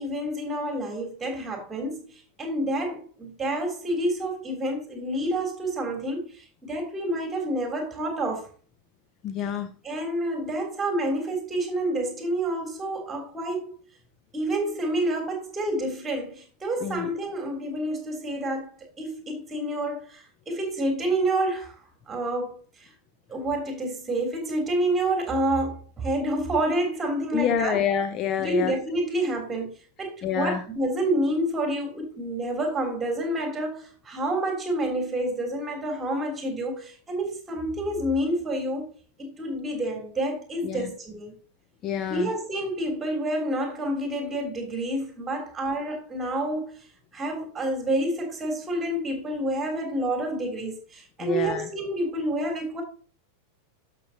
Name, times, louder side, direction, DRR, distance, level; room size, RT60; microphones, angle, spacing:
voice 1, 0.0-8.5 9.8-13.7 14.3-18.7 19.0-21.7 22.1-22.9 23.3-27.8 28.4-38.9 39.2-41.3 42.1-46.8 47.1-52.8, right 1 dB, 15° right, 3.3 m, -28 dB
voice 2, 9.2-9.7 16.8-17.1 27.3-28.7 30.2-30.6 40.6-40.9 41.8-42.3 51.2-51.7, left 8 dB, 35° left, 0.7 m, -27 dB
12.0 x 6.7 x 2.9 m
figure-of-eight pair, 90°, 0 cm